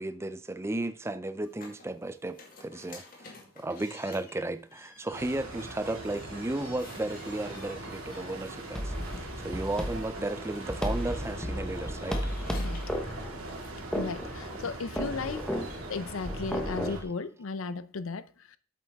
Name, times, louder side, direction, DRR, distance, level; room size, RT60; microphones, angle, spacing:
voice 1, 0.0-3.0 3.6-12.2 14.4-14.7, right 2 dB, 10° right, 0.4 m, -34 dB
sound 1, 1.4-14.8, left 3 dB, 40° left, 2.1 m, -52 dB
sound 2, 5.1-17.0, right 2 dB, 85° right, 2.3 m, -41 dB
sound 3, 8.8-17.0, equal, 5° left, 1.0 m, -34 dB
voice 2, 13.9-15.5 15.9-18.6, left 4 dB, 75° left, 0.6 m, -35 dB
8.6 x 7.5 x 3.5 m
head